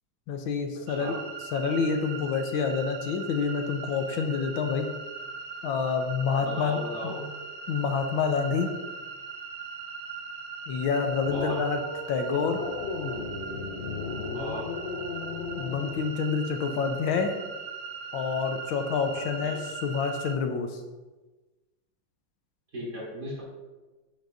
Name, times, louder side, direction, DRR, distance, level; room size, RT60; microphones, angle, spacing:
voice 1, 0.3-1.2 1.5-4.9 5.6-6.8 7.0-7.1 7.7-8.7 10.7-11.8 12.1-12.6 15.6-17.4 18.1-20.8, left 5 dB, 85° left, 5 dB, 1.6 m, -28 dB
sound 1, 0.9-20.4, right 5 dB, 85° right, 1.7 m, -40 dB
voice 2, 6.4-7.3 11.3-11.6 14.3-14.7 19.4-19.6 22.7-23.4, equal, 55° right, -7 dB, 3.5 m, -36 dB
sound 2, 11.2-16.0, left 4 dB, 55° left, 0.8 m, -35 dB
9.4 x 7.3 x 2.6 m, 1.2 s
omnidirectional pair, 2.1 m